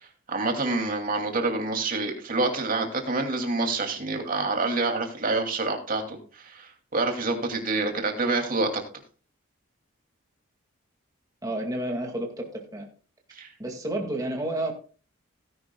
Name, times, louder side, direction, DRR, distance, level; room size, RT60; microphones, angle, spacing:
voice 1, 0.3-8.8 13.3-13.5, right 3 dB, 45° right, 3 dB, 2.6 m, -27 dB
voice 2, 11.4-12.9 13.6-14.7, right 1 dB, 20° right, 1 dB, 2.0 m, -30 dB
17.5 x 10.5 x 2.3 m, 0.38 s
head